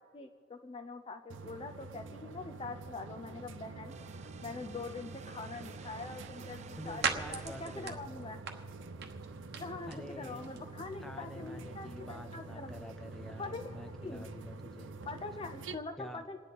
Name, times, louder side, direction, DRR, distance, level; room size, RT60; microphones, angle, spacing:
voice 1, 0.1-3.9 4.4-8.4 9.6-12.8 13.4-13.7 14.0-14.3 15.0-16.4, left 3 dB, 30° left, 7 dB, 0.5 m, -43 dB
sound 1, 1.3-15.7, right 3 dB, 85° right, 0.6 m, -47 dB
sound 2, 3.9-8.0, right 6 dB, 40° right, 0.4 m, -54 dB
sound 3, 5.8-14.5, right 6 dB, 60° right, 1.1 m, -44 dB
voice 2, 6.8-8.1 9.9-10.4 11.0-14.9 16.0-16.4, left 1 dB, ahead, 5 dB, 0.9 m, -47 dB
28.0 x 9.8 x 4.1 m, 2.5 s
head